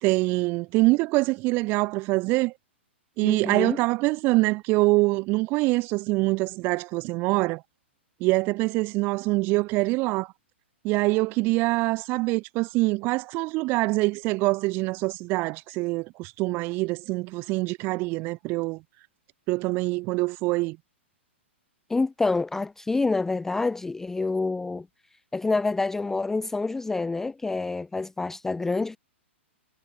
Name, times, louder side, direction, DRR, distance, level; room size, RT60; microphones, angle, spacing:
voice 1, 0.0-2.5 3.2-7.6 8.2-10.3 10.8-18.8 19.5-20.8, right 23 dB, 30° right, 0.7 m, -24 dB
voice 2, 3.2-3.8 21.9-24.9 25.3-29.0, left 3 dB, 5° left, 0.3 m, -27 dB
figure-of-eight pair, 115°, 7 cm